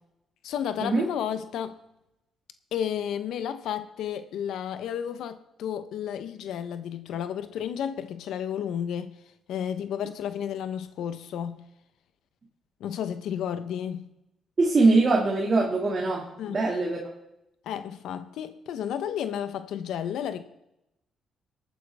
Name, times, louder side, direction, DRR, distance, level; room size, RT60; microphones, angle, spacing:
voice 1, 0.4-1.8 2.7-9.1 9.5-11.6 12.8-14.1 16.4-16.6 17.6-20.4, left 9 dB, 80° left, 0.8 m, -32 dB
voice 2, 14.6-17.0, right 3 dB, 40° right, 2.1 m, -22 dB
21.0 x 9.2 x 3.5 m
cardioid pair, 90°, 0 cm